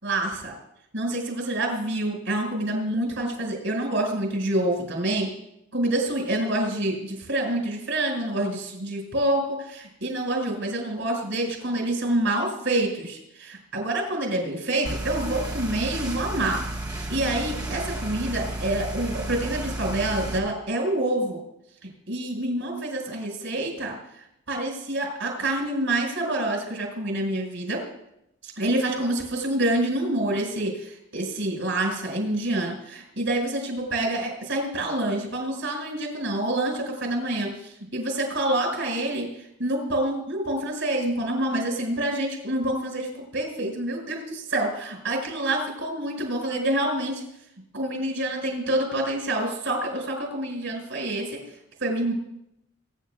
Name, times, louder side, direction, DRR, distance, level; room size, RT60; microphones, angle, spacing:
voice 1, 0.0-0.6 0.9-5.3 5.7-16.6 17.1-21.4 22.1-23.9 24.5-27.8 28.4-39.3 39.6-47.2 47.7-51.4 51.8-52.1, right 1 dB, 70° right, 1 dB, 5.4 m, -27 dB
sound 1, 14.8-20.4, right 1 dB, 20° right, 1.5 m, -32 dB
24.5 x 10.5 x 2.4 m, 0.82 s
head